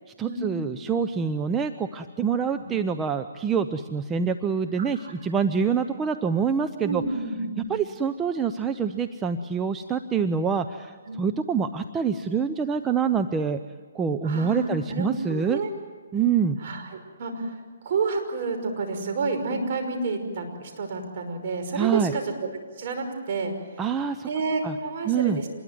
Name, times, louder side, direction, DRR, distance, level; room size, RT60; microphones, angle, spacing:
voice 1, 0.2-7.0 7.7-13.6 13.9-15.6 16.1-16.6 21.7-22.1 23.8-24.3 24.6-24.7 25.1-25.4, right 6 dB, 15° right, 8 dB, 0.7 m, -26 dB
voice 2, 4.8-5.1 6.8-7.6 11.1-11.2 14.2-15.7 16.6-17.6 17.8-22.5 22.8-23.8 24.3-25.5, right 3 dB, 45° right, 5 dB, 5.7 m, -30 dB
26.5 x 21.0 x 9.4 m, 1.5 s
hypercardioid pair, 155°, 0 cm